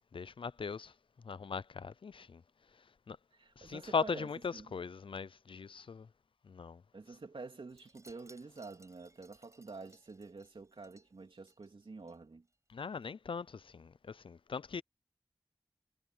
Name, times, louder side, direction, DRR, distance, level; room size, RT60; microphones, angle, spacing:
voice 1, 0.1-0.9 1.2-2.4 3.1-3.2 3.6-6.1 6.4-6.8 12.7-14.8, left 5 dB, 85° left, 0.4 m, -39 dB
voice 2, 3.3-4.7 6.9-12.5, right 3 dB, 85° right, 3.1 m, -49 dB
Wind chime, 7.7-12.2 12.5-12.8 13.0-13.1, right 1 dB, 35° right, 5.3 m, -65 dB
wide cardioid pair, 45°, 9 cm